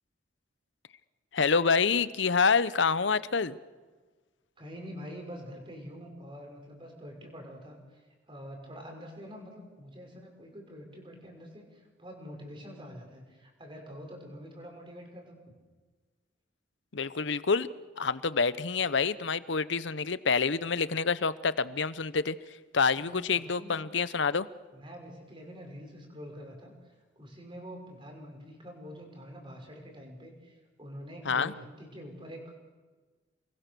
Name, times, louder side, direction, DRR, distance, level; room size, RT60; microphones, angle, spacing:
voice 1, 1.3-3.6 16.9-17.7 18.0-22.4 22.7-24.5 31.3-31.5, left 5 dB, 65° left, 16 dB, 0.8 m, -27 dB
voice 2, 4.6-8.0 8.3-15.4 22.9-23.9 24.7-26.7 27.2-32.6, equal, 25° right, 2 dB, 5.7 m, -46 dB
29.5 x 22.0 x 6.8 m, 1.3 s
head